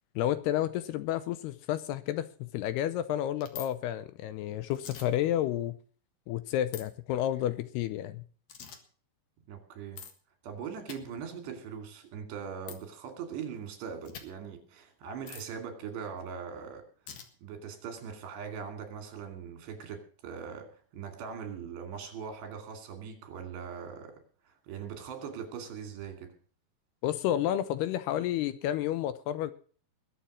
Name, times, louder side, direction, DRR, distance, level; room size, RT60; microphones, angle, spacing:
voice 1, 0.2-5.8 6.3-8.2 27.0-29.5, left 12 dB, 75° left, 2.6 m, -31 dB
sound 1, 3.4-3.7 4.7-5.1 6.7-6.8 8.5-8.8 10.0-10.1 10.9-11.0 12.7-12.8 14.0-14.2 15.3-15.5 17.1-17.3, left 7 dB, 55° left, 2.2 m, -43 dB
voice 2, 9.5-10.1 10.4-16.8 17.4-24.2 24.5-26.3, right 7 dB, 75° right, 4.7 m, -41 dB
21.0 x 7.3 x 6.2 m
omnidirectional pair, 5.0 m